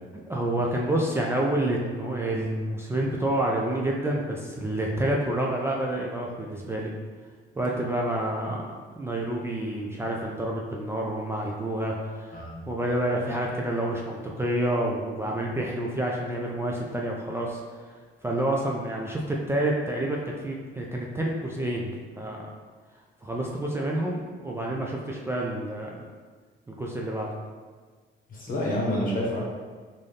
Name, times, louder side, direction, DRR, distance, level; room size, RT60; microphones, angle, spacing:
voice 1, 0.3-6.9 7.6-8.6 9.0-17.6 18.2-22.4 23.2-25.9 26.7-27.3, right 1 dB, 10° right, -3 dB, 0.4 m, -28 dB
voice 2, 12.3-12.7 28.3-29.4, left 1 dB, 45° left, -3 dB, 1.1 m, -28 dB
3.7 x 2.6 x 3.3 m, 1.5 s
cardioid pair, 90°, 20 cm